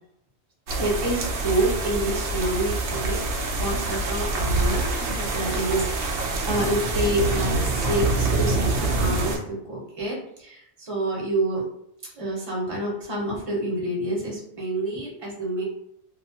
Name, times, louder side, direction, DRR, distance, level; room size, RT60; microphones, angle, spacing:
voice 1, 0.7-11.7 12.0-15.6, right 1 dB, 30° right, -4 dB, 0.9 m, -28 dB
sound 1, 0.7-9.4, right 3 dB, 65° right, 0.7 m, -25 dB
2.6 x 2.3 x 2.7 m, 0.75 s
omnidirectional pair, 1.2 m